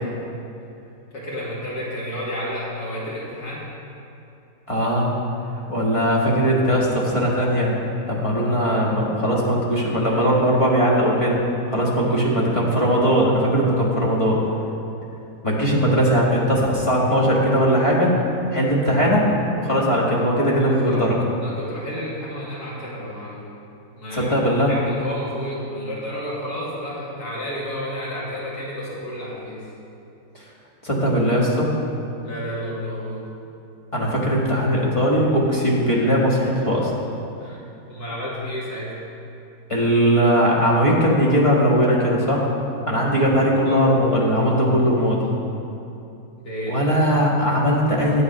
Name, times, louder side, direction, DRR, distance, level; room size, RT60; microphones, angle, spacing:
voice 1, 0.8-3.7 12.1-12.2 20.6-21.1 21.4-23.4 24.0-24.3 24.7-29.6 32.2-33.2 37.4-37.6 37.9-38.9 43.6-43.8 46.4-46.9, equal, 60° left, -6 dB, 2.7 m, -31 dB
voice 2, 4.7-5.1 5.7-7.8 8.1-11.4 11.7-14.4 15.4-18.1 18.5-19.3 19.6-21.2 24.1-24.7 30.8-31.7 33.9-36.9 39.7-42.5 42.9-45.2 46.7-48.2, equal, 20° left, -4 dB, 1.5 m, -19 dB
9.5 x 7.8 x 5.4 m, 2.8 s
omnidirectional pair, 1.9 m